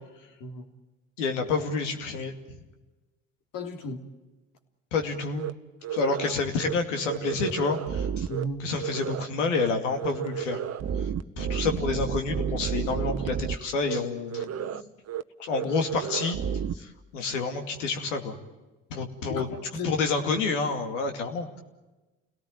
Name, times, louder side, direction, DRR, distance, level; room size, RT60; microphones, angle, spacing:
voice 1, 1.2-2.3 4.9-5.5 5.9-8.3 8.6-10.6 11.0-11.1 11.4-14.9 15.4-16.4 16.7-18.4 18.9-19.5 19.8-21.6, left 4 dB, 90° left, 5 dB, 2.6 m, -29 dB
voice 2, 3.5-4.0 8.3-8.7 19.3-19.9, left 1 dB, 65° left, 6 dB, 3.3 m, -34 dB
sound 1, 5.4-5.5 5.8-6.3 6.6-6.7 7.0-8.4 8.8-9.3 9.5-9.7 10.0-13.6 13.8-14.0 14.3-14.8 15.1-15.2 15.5-16.7, right 8 dB, 45° right, 1.1 m, -31 dB
28.5 x 18.0 x 8.9 m, 1.1 s
hypercardioid pair, 65°, 36 cm